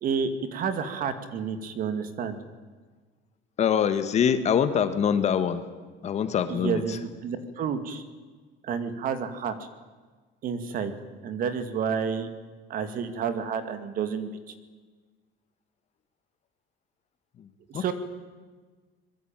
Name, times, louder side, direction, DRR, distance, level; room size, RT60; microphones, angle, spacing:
voice 1, 0.0-2.4 6.5-8.0 8.6-9.7 10.4-10.9 11.2-12.3 12.7-14.3 17.7-17.9, right 6 dB, 40° right, 10 dB, 2.2 m, -30 dB
voice 2, 3.6-5.6 6.0-7.0 17.7-17.9, left 8 dB, 30° left, 10 dB, 1.5 m, -24 dB
25.5 x 22.0 x 9.0 m, 1.4 s
cardioid pair, 175°, 21 cm